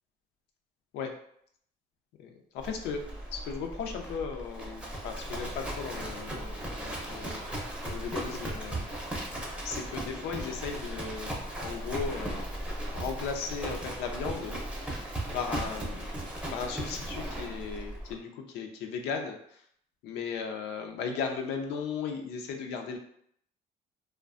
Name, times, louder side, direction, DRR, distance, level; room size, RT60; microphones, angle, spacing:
voice 1, 2.2-3.0 3.3-7.5 7.8-9.3 9.6-11.3 11.6-12.4 12.9-14.6 15.3-16.1 16.5-19.6 20.0-23.0, left 6 dB, 85° left, 4 dB, 0.4 m, -36 dB
Livestock farm animals working animals, 2.6-18.1, right 1 dB, 5° right, 0.5 m, -37 dB
2.5 x 2.1 x 2.4 m, 0.68 s
cardioid pair, 110°, 17 cm